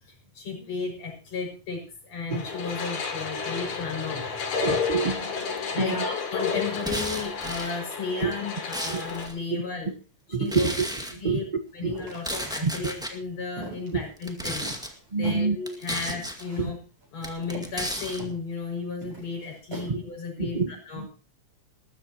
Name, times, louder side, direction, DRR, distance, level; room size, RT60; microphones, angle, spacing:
voice 1, 0.0-4.3 5.7-9.9 10.3-10.7 11.2-11.5 11.7-14.7 15.2-16.8 17.1-21.0, left 4 dB, 60° left, 1 dB, 7.5 m, -34 dB
sound 1, 2.3-9.3, left 5 dB, 75° left, 4.0 m, -31 dB
voice 2, 4.6-5.5 5.8-6.1 8.2-8.3 8.9-9.0 9.5-9.6 10.3-10.9 11.1-11.4 11.8-12.0 12.6-12.7 13.9-14.0 15.1-15.6 16.6-16.7 19.9-20.0 20.4-21.1, right 4 dB, 85° right, 5 dB, 0.4 m, -27 dB
sound 2, 6.8-7.7 8.3-9.3 10.5-11.1 12.1-13.1 14.2-14.9 15.7-16.4 17.2-18.2, equal, ahead, 1.4 m, -34 dB
sound 3, 11.9-12.6 13.1-15.0 15.2-15.5 16.1-16.7 17.0-17.1 17.4-18.4 19.0-19.9, right 2 dB, 50° right, 6.7 m, -41 dB
20.0 x 14.0 x 3.0 m, 0.35 s
omnidirectional pair, 3.3 m